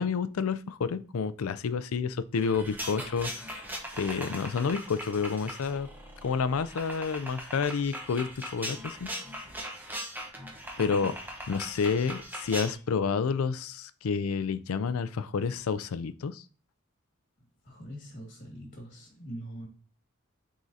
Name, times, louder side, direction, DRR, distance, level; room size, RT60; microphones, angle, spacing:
voice 1, 0.0-3.5 4.0-5.9 6.2-9.1 10.8-11.1 11.5-16.4, left 5 dB, 85° left, 14 dB, 0.4 m, -29 dB
sound 1, 2.4-12.7, equal, 10° right, 0.9 m, -40 dB
voice 2, 17.6-19.7, right 1 dB, 45° left, 0 dB, 1.9 m, -43 dB
9.2 x 3.7 x 2.7 m, 0.39 s
head